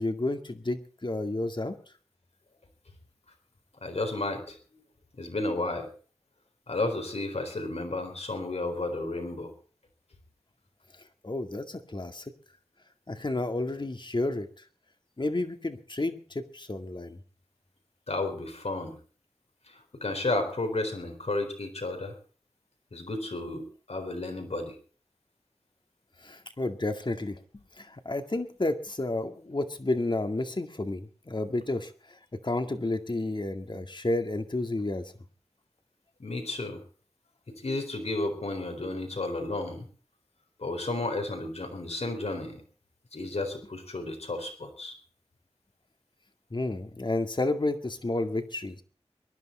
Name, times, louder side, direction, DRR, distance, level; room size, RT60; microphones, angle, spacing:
voice 1, 0.0-1.8 11.2-12.3 13.1-14.5 15.2-17.2 26.2-27.4 27.8-35.1 46.5-48.8, left 2 dB, 45° left, 7 dB, 2.1 m, -31 dB
voice 2, 3.8-4.8 5.1-5.9 6.7-9.5 18.1-19.0 19.7-22.2 22.9-24.8 36.2-36.8 37.5-39.9 40.6-42.6 43.1-44.9, left 2 dB, 75° left, 5 dB, 4.1 m, -32 dB
23.5 x 11.0 x 4.3 m, 0.41 s
cardioid pair, 40°, 11 cm